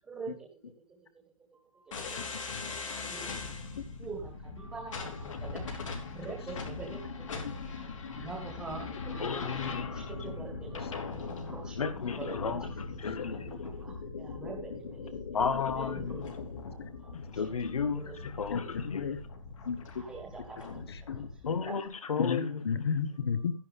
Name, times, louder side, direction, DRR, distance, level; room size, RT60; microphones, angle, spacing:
voice 1, 0.0-0.5 0.9-1.0 1.5-2.3 3.1-3.3 3.6-3.7 4.0-7.3 7.6-9.5 9.9-11.8 12.2-12.7 13.2-15.1 15.7-16.2 16.6-16.7 17.0-17.4 17.9-18.2 20.0-20.8 21.6-21.7, right 4 dB, 5° right, 1.6 m, -45 dB
sound 1, 1.9-21.6, left 4 dB, 65° left, 3.4 m, -40 dB
voice 2, 2.3-2.8 3.8-3.9 7.4-7.5 18.5-19.2 19.6-20.0 20.6-21.5 22.2-23.5, left 6 dB, 50° left, 1.2 m, -34 dB
voice 3, 9.2-10.1 11.8-13.5 15.3-16.2 17.1-19.1 21.5-22.6, left 6 dB, 85° left, 1.8 m, -34 dB
11.0 x 10.5 x 3.6 m
hypercardioid pair, 180°, 17 cm